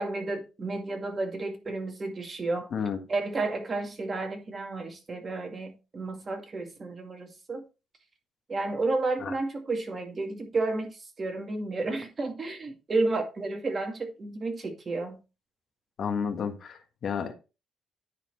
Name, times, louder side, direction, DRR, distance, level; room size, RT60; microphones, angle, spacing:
voice 1, 0.0-2.7 3.1-7.6 8.5-15.2, right 3 dB, 35° right, 2.2 m, -31 dB
voice 2, 16.0-17.3, left 6 dB, 60° left, 1.6 m, -31 dB
9.9 x 4.3 x 4.1 m
cardioid pair, 90°, 0 cm